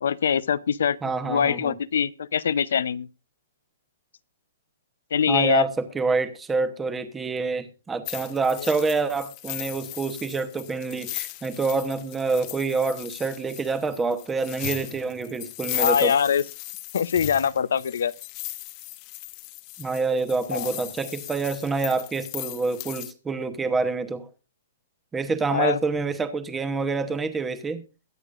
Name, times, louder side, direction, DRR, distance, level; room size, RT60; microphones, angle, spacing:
voice 1, 0.0-1.0 1.2-3.1 5.1-5.6 15.8-16.5 16.9-18.1 20.5-20.7 25.5-25.8, left 7 dB, 75° left, 0.7 m, -23 dB
voice 2, 1.0-1.8 5.3-16.1 19.8-24.3 25.1-27.8, right 4 dB, 10° right, 1.0 m, -27 dB
sound 1, 8.1-23.1, left 19 dB, 30° left, 0.8 m, -37 dB
22.0 x 8.1 x 2.5 m
hypercardioid pair, 165°, 0 cm